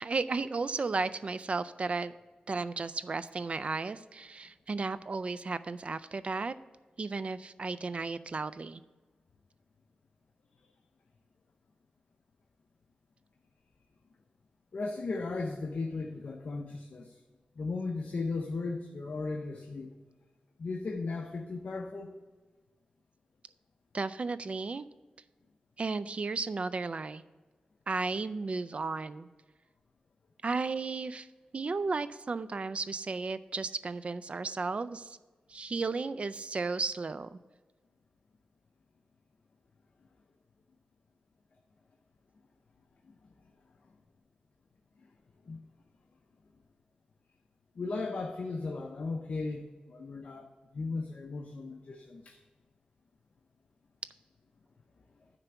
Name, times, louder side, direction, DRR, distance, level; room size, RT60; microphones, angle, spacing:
voice 1, 0.0-2.1 2.5-6.5 7.0-8.8 23.9-24.9 25.8-27.2 27.9-29.3 30.4-31.3 31.5-35.2 35.5-37.4, right 4 dB, 45° right, 14 dB, 0.4 m, -34 dB
voice 2, 14.7-17.2 17.6-19.9 20.6-22.1 45.5-45.6 47.8-50.5 50.7-52.4, left 3 dB, 65° left, 2 dB, 0.7 m, -36 dB
9.6 x 3.4 x 6.9 m, 1.3 s
wide cardioid pair, 80°, 3 cm